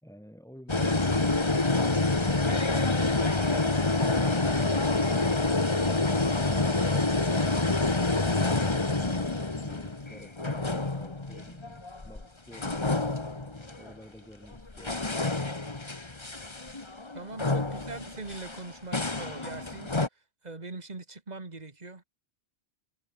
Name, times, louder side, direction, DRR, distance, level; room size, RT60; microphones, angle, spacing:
voice 1, 0.0-15.0, equal, 5° left, 4.2 m, -50 dB
sound 1, 0.7-12.2 12.5-13.9 14.5-20.1, left 2 dB, 25° left, 1.6 m, -27 dB
voice 2, 17.1-22.0, right 3 dB, 40° right, 2.1 m, -42 dB
omnidirectional pair, 1.1 m